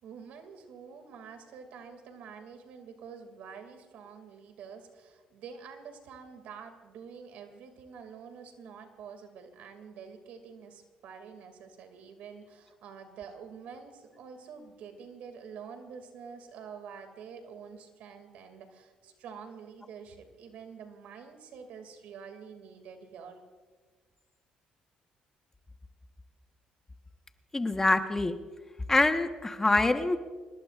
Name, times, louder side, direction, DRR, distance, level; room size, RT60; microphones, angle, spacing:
voice 1, 0.0-23.4, right 6 dB, 75° right, 6 dB, 2.4 m, -47 dB
voice 2, 27.5-28.4 28.9-30.2, left 2 dB, 15° left, 7 dB, 1.2 m, -25 dB
25.5 x 20.5 x 2.5 m, 1.4 s
cardioid pair, 85°, 3 cm